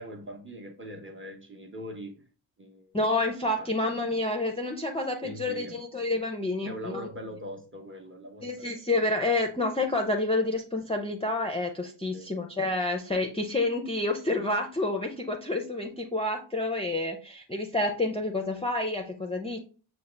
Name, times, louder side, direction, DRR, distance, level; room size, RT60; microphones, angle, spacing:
voice 1, 0.0-2.3 2.6-3.0 3.6-3.7 5.2-5.8 6.6-8.8 12.1-12.3, equal, 25° right, 0.7 m, -41 dB
voice 2, 2.9-7.1 8.4-19.6, left 2 dB, 15° left, 0.4 m, -29 dB
5.9 x 2.1 x 3.2 m
wide cardioid pair, 80°, 47 cm